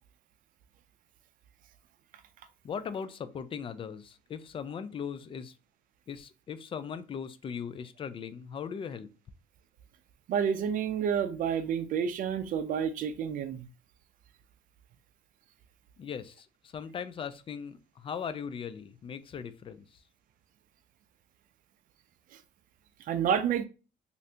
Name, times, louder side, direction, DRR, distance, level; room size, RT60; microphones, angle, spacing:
voice 1, 2.6-5.6 6.1-9.1 16.0-20.0, left 7 dB, 30° left, 0.3 m, -39 dB
voice 2, 10.3-13.7 23.1-23.6, right 8 dB, 55° right, 0.4 m, -29 dB
3.1 x 2.5 x 2.8 m
cardioid pair, 110°, 17 cm